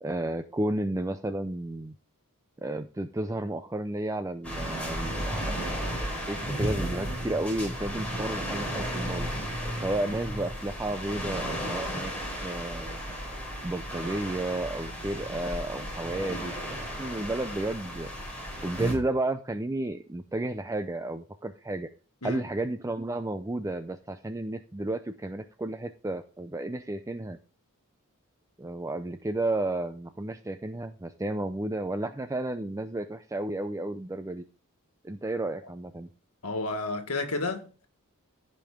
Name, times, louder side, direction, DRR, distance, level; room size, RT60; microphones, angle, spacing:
voice 1, 0.0-2.0 2.6-5.5 6.3-9.3 9.8-12.1 12.4-13.0 13.6-18.1 18.6-21.9 22.2-27.4 28.6-34.4 35.0-36.1, right 2 dB, 15° right, 0.5 m, -32 dB
sound 1, 4.4-19.0, equal, 5° left, 3.7 m, -34 dB
voice 2, 36.4-37.9, left 3 dB, 80° left, 1.8 m, -31 dB
15.0 x 5.3 x 3.7 m
head